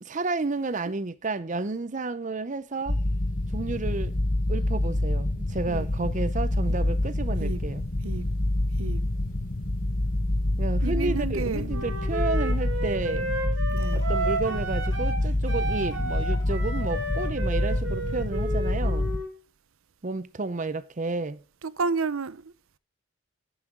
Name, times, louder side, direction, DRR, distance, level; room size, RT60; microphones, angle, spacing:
voice 1, 0.0-3.0 3.5-4.2 4.5-7.8 10.6-13.3 13.9-19.1 20.0-21.4, right 3 dB, 35° right, 0.6 m, -31 dB
sound 1, 2.9-19.2, left 1 dB, 40° left, 1.0 m, -27 dB
voice 2, 10.8-11.7 13.7-14.0 21.6-22.5, right 4 dB, 80° right, 0.7 m, -31 dB
Wind instrument woodwind instrument, 11.7-15.2 15.5-19.3, right 2 dB, 60° right, 2.9 m, -32 dB
11.0 x 10.0 x 3.7 m
head